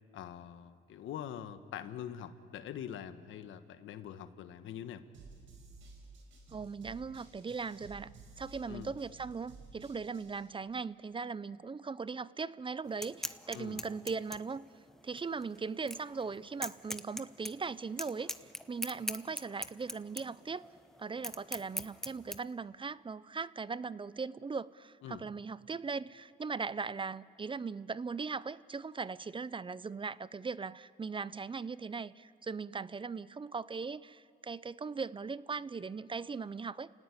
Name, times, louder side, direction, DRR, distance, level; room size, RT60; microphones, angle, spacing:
voice 1, 0.1-5.0 8.7-8.9 13.5-13.8 25.0-25.2, left 10 dB, 80° left, 11 dB, 1.4 m, -44 dB
sound 1, 5.1-10.5, right 3 dB, 75° right, 5.2 m, -54 dB
voice 2, 6.5-14.7 15.0-20.6 21.0-36.9, right 5 dB, 25° right, 18 dB, 0.5 m, -39 dB
sound 2, 12.9-22.4, equal, ahead, 1.1 m, -43 dB
29.5 x 17.5 x 9.9 m, 2.3 s
cardioid pair, 90°, 20 cm